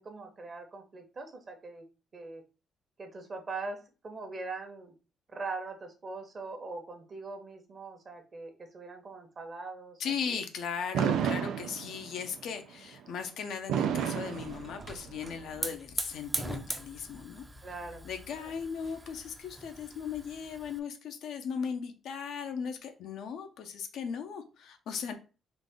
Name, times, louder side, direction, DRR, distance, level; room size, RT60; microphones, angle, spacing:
voice 1, 0.0-1.8 2.1-2.4 3.0-3.8 4.0-4.9 5.3-10.4 17.6-18.1 18.4-18.5, right 3 dB, 40° right, 5 dB, 1.0 m, -41 dB
voice 2, 10.0-17.5 18.0-25.1, left 6 dB, 75° left, 6 dB, 0.6 m, -37 dB
Fireworks, 10.9-12.3 13.7-15.2, right 8 dB, 85° right, 0.4 m, -30 dB
Hiss / Fire, 13.9-20.8, right 2 dB, 15° right, 0.5 m, -41 dB
4.0 x 2.5 x 3.6 m, 0.34 s
cardioid pair, 90°, 0 cm